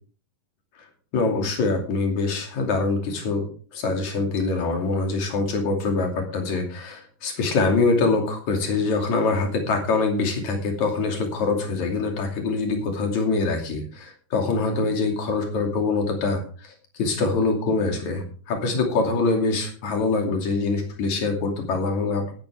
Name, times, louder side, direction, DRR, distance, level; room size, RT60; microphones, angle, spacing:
voice 1, 1.1-3.5 3.7-16.7 17.0-22.3, left 3 dB, 60° left, 2 dB, 3.8 m, -24 dB
14.5 x 11.5 x 3.5 m, 0.41 s
omnidirectional pair, 3.9 m